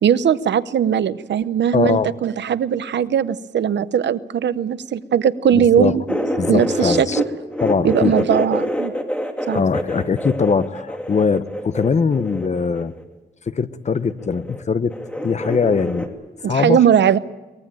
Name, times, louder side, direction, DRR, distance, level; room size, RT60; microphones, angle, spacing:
voice 1, 0.0-6.2 6.5-7.2 7.8-8.9 9.5-9.6 16.4-17.2, right 9 dB, 75° right, 15 dB, 0.8 m, -19 dB
voice 2, 1.7-2.1 5.5-6.0 6.4-7.2 7.6-8.2 9.5-12.9 13.5-14.9 15.2-16.1 16.5-16.8, left 5 dB, 40° left, 14 dB, 0.8 m, -21 dB
sound 1, 6.1-7.2 7.5-13.0 14.0-14.6 14.9-16.1, equal, 5° left, 2.4 m, -26 dB
23.5 x 19.5 x 8.9 m, 1.2 s
wide cardioid pair, 135°, 18 cm